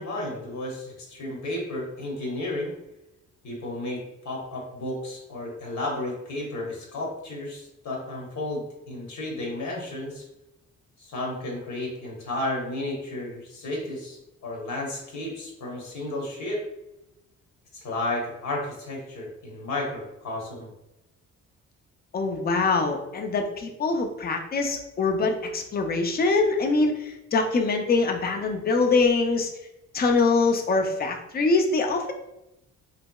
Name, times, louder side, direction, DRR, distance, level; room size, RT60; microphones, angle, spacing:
voice 1, 0.0-2.8 3.4-10.2 11.0-16.6 17.7-20.7, left 1 dB, 70° left, -2 dB, 1.0 m, -33 dB
voice 2, 22.1-29.5 29.9-32.1, left 3 dB, 30° left, 4 dB, 0.4 m, -24 dB
3.2 x 2.8 x 2.2 m, 0.88 s
cardioid pair, 135°, 30 cm